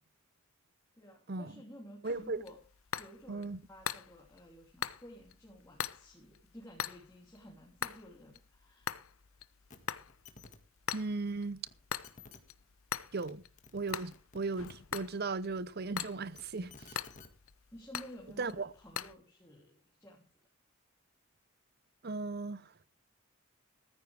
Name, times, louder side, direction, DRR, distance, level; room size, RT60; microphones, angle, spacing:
voice 1, 1.0-2.6 3.0-9.1 17.7-20.2, equal, 15° left, 2.9 m, -53 dB
sound 1, 2.0-19.1, left 8 dB, 75° left, 0.7 m, -43 dB
voice 2, 2.0-2.4 3.3-3.6 10.9-11.6 13.1-13.4 13.7-17.0 18.4-18.7 22.0-22.7, right 3 dB, 50° right, 0.7 m, -37 dB
sound 2, 9.7-9.8 10.1-10.6 11.7-11.8 12.0-12.4 13.0-13.3 13.6-14.7 16.1-17.3 18.3-18.4, left 4 dB, 35° left, 1.9 m, -53 dB
14.5 x 14.5 x 3.4 m
head